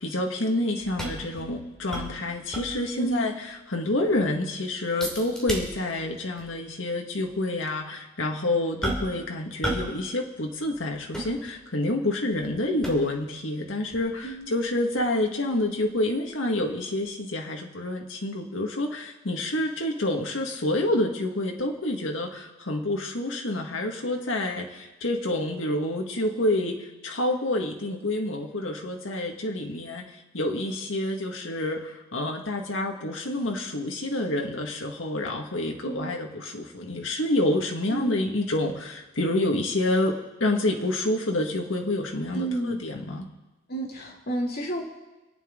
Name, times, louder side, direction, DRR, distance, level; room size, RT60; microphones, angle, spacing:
voice 1, 0.0-43.3, left 1 dB, 80° left, 2 dB, 1.8 m, -28 dB
sound 1, 0.8-3.1 3.5-3.6 3.9-4.3 5.0-6.1 6.4-6.6 7.2-7.4 8.8-9.3 9.6-10.0 10.3-11.9 12.3-13.3 13.9-16.7 17.1-17.2, right 1 dB, 5° left, 2.8 m, -35 dB
voice 2, 3.0-3.3 14.2-14.5 35.8-36.1 37.9-38.1 42.3-42.8 43.7-44.8, right 1 dB, 55° left, -1 dB, 2.4 m, -31 dB
27.0 x 9.1 x 3.8 m, 1.1 s
head